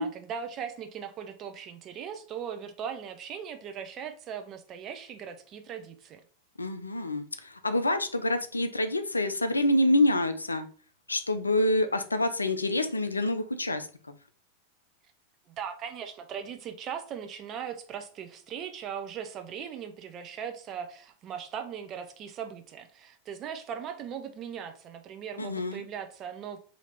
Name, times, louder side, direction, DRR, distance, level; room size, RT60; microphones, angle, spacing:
voice 1, 0.0-6.2 15.6-26.6, right 8 dB, 30° right, 7 dB, 0.5 m, -39 dB
voice 2, 6.6-10.7 11.1-13.9 25.4-25.9, left 1 dB, 80° left, 9 dB, 0.4 m, -27 dB
2.8 x 2.8 x 4.3 m, 0.42 s
figure-of-eight pair, 90°, 0 cm